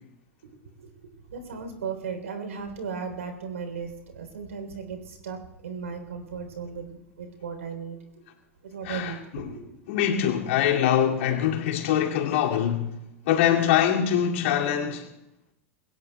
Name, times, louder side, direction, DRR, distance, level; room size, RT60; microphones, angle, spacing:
voice 1, 1.3-6.8 7.2-8.0 8.6-9.8, right 5 dB, 80° right, 3.6 m, -36 dB
voice 2, 8.8-9.5 9.9-15.1, left 10 dB, 65° left, 2.5 m, -24 dB
27.5 x 21.5 x 2.3 m
hypercardioid pair, 90°, 7 cm